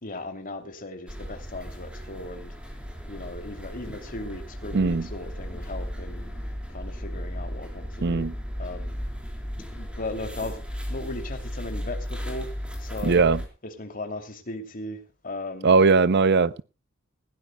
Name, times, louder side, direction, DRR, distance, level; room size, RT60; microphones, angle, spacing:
voice 1, 0.0-2.5 3.1-6.3 6.7-8.3 8.6-9.0 9.8-12.5 12.8-13.2 13.6-15.7, left 2 dB, 40° left, 2.8 m, -37 dB
sound 1, 1.1-13.5, equal, 5° right, 3.8 m, -35 dB
voice 2, 4.7-5.0 8.0-8.3 13.0-13.4 15.6-16.6, right 4 dB, 50° right, 0.5 m, -19 dB
20.0 x 16.5 x 2.2 m
head